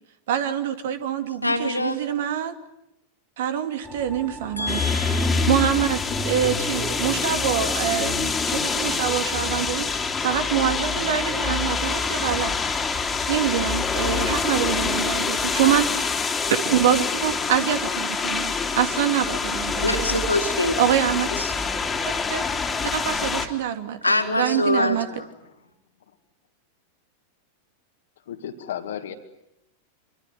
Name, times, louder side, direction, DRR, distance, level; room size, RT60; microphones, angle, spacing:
voice 1, 0.3-2.6 3.4-4.8 5.5-12.6 13.3-16.1 16.5-20.2 20.8-21.3 22.3-22.4 22.8-24.0 24.4-25.1, right 9 dB, 55° right, 9 dB, 2.5 m, -25 dB
voice 2, 1.4-2.0 4.6-5.5 19.8-20.8 21.4-21.5 24.0-25.3, left 2 dB, 85° left, 3 dB, 3.5 m, -25 dB
sound 1, 3.8-13.4, right 2 dB, 10° right, 4.1 m, -43 dB
sound 2, 4.7-23.5, left 4 dB, 15° left, 3.2 m, -26 dB
voice 3, 28.3-29.1, left 9 dB, 60° left, 7 dB, 2.2 m, -33 dB
26.0 x 24.5 x 9.4 m, 0.84 s
figure-of-eight pair, 90°, 0 cm